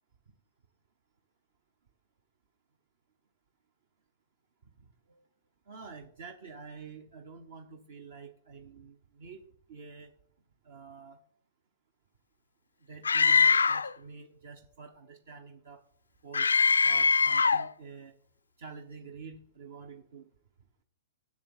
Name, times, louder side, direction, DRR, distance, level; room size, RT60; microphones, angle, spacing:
voice 1, 5.7-9.4 9.7-10.1 10.6-11.2 12.9-15.8 16.2-16.5 16.8-18.2 18.6-20.3, right 5 dB, 60° right, 6 dB, 1.0 m, -48 dB
Screaming, 13.1-13.9 16.3-17.7, left 5 dB, 80° left, 0.3 m, -23 dB
7.4 x 7.2 x 7.2 m, 0.63 s
figure-of-eight pair, 110°, 0 cm